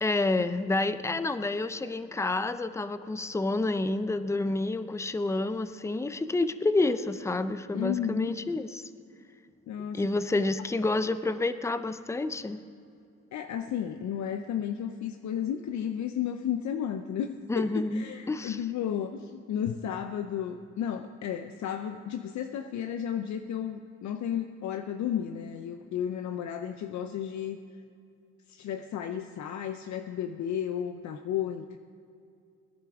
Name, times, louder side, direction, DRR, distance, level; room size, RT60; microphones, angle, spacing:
voice 1, 0.0-8.8 9.9-12.6 17.5-18.6, left 2 dB, 10° left, 11 dB, 0.5 m, -29 dB
voice 2, 7.7-8.3 9.7-10.1 10.4-10.6 13.3-27.6 28.5-31.8, left 9 dB, 70° left, 7 dB, 0.6 m, -33 dB
21.5 x 10.5 x 3.6 m, 2.4 s
cardioid pair, 90°, 30 cm